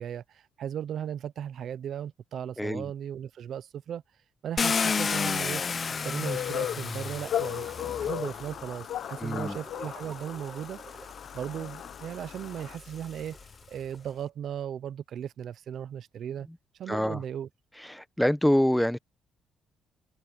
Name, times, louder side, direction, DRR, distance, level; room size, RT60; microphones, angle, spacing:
voice 1, 0.0-4.0 4.4-5.6 6.0-7.7 8.0-11.1 11.3-16.5 16.8-17.5, right 9 dB, 65° right, 0.7 m, -37 dB
Car, 4.6-8.7 9.6-9.7 10.3-13.5, left 5 dB, 40° left, 0.8 m, -32 dB
sound 1, 4.6-14.2, right 4 dB, 35° right, 4.2 m, -52 dB
sound 2, 6.2-12.8, left 11 dB, 70° left, 1.1 m, -36 dB
voice 2, 9.2-9.6 16.9-17.2 17.9-19.0, left 1 dB, 5° left, 1.1 m, -25 dB
cardioid pair, 90°, 0 cm